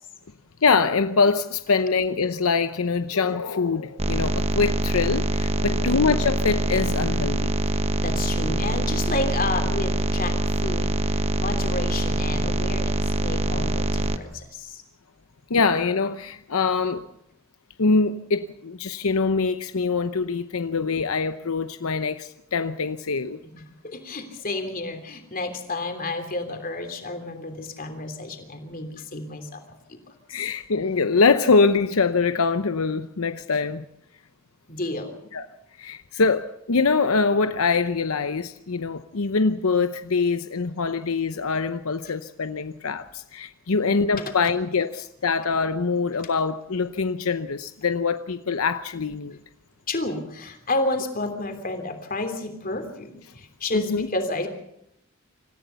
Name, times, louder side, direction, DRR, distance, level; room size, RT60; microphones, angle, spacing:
voice 1, 0.6-7.5 15.5-17.1 17.8-23.4 30.3-33.8 35.3-35.5 35.8-49.4 53.7-54.1, left 4 dB, 85° left, 0.8 m, -24 dB
sound 1, 4.0-14.2, right 1 dB, 30° right, 1.0 m, -24 dB
voice 2, 5.6-6.0 7.7-14.8 23.4-29.6 29.9-30.4 34.7-35.2 43.7-44.2 49.9-54.5, left 2 dB, 40° left, 3.2 m, -31 dB
26.5 x 14.5 x 6.9 m
head